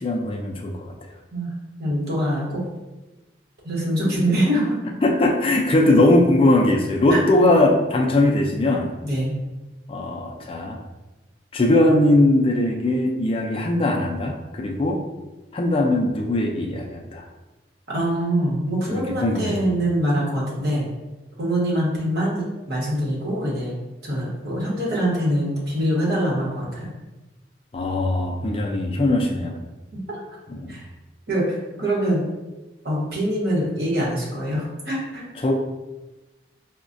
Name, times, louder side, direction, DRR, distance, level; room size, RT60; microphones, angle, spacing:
voice 1, 0.0-0.9 5.0-8.9 9.9-10.8 11.5-15.0 15.5-17.3 18.9-19.6 27.7-29.6 30.5-30.8 35.4-35.5, left 1 dB, 30° left, 1 dB, 0.3 m, -20 dB
voice 2, 1.8-2.6 3.6-4.8 7.1-7.2 9.0-9.3 17.9-20.9 21.4-23.7 24.0-26.9 29.9-30.2 30.7-30.9 31.3-32.2 32.8-35.2, equal, 60° right, -5 dB, 1.1 m, -24 dB
4.6 x 2.1 x 2.5 m, 1.1 s
head